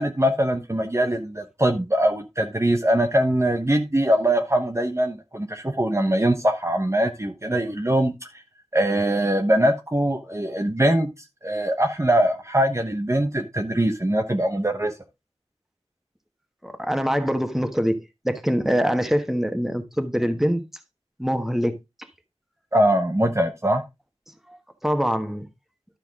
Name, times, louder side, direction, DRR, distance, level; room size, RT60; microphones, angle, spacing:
voice 1, 0.0-8.1 8.7-11.1 11.4-14.9 22.7-23.8, right 1 dB, 25° right, 1.1 m, -22 dB
voice 2, 16.6-18.0 18.2-20.6 21.2-21.7 24.5-24.6 24.8-25.5, equal, 5° right, 1.3 m, -23 dB
12.0 x 5.8 x 3.6 m
wide cardioid pair, 55°, 11 cm